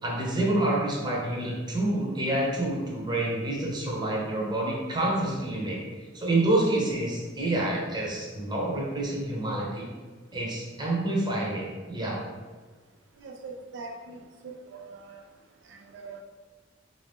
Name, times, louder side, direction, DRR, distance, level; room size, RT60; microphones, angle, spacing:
voice 1, 0.0-5.8 6.1-9.9 10.3-12.2, right 1 dB, 25° right, -3 dB, 0.8 m, -28 dB
voice 2, 13.2-14.2 14.4-15.2 15.9-16.2, right 3 dB, 70° right, 3 dB, 0.3 m, -41 dB
3.9 x 2.6 x 3.5 m, 1.4 s
head